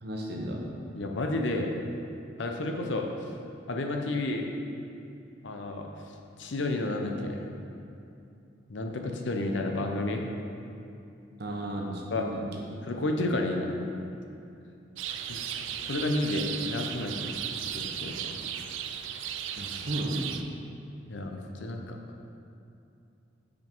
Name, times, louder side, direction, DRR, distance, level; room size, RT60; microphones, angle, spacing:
voice 1, 0.0-0.7 11.4-12.4 19.5-20.4, right 1 dB, 60° right, 0 dB, 0.9 m, -34 dB
voice 2, 0.9-1.7 2.4-3.1 3.7-4.5 5.4-5.9 6.4-7.4 8.7-10.2 12.1-12.3 12.8-13.7 15.3-17.3 17.7-18.3 21.1-22.0, left 2 dB, 80° left, 3 dB, 0.7 m, -31 dB
sound 1, 15.0-20.4, right 9 dB, 85° right, 0.4 m, -36 dB
5.9 x 5.2 x 4.5 m, 2.7 s
head